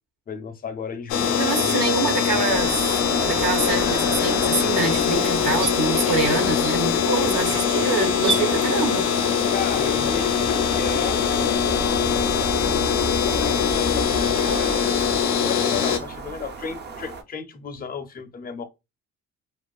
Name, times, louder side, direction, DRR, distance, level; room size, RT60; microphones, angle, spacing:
voice 1, 0.3-2.0 9.5-11.2 12.6-15.0 15.4-18.6, left 5 dB, 30° left, 0.4 m, -34 dB
sound 1, 1.1-16.0, left 7 dB, 85° left, 0.5 m, -22 dB
voice 2, 1.4-9.0, right 4 dB, 70° right, 0.7 m, -25 dB
sound 2, 2.5-17.2, right 3 dB, 35° right, 0.4 m, -34 dB
sound 3, 3.1-8.4, right 3 dB, 90° right, 1.1 m, -35 dB
2.4 x 2.4 x 2.2 m
cardioid pair, 90°, 30 cm